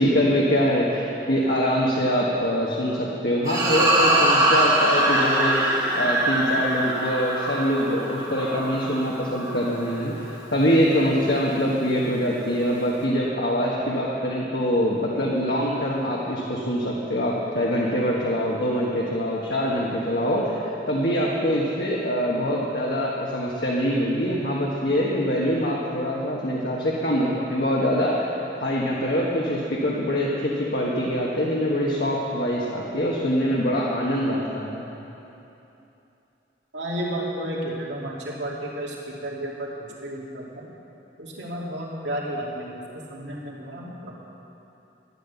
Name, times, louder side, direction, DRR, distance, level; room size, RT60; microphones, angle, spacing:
voice 1, 0.0-34.8, equal, 65° left, -5 dB, 1.5 m, -24 dB
sound 1, 3.5-10.0, right 1 dB, 20° right, 1.9 m, -23 dB
voice 2, 36.7-40.7 41.2-44.1, right 1 dB, 80° right, -3 dB, 2.5 m, -32 dB
12.5 x 10.5 x 7.0 m, 2.9 s
head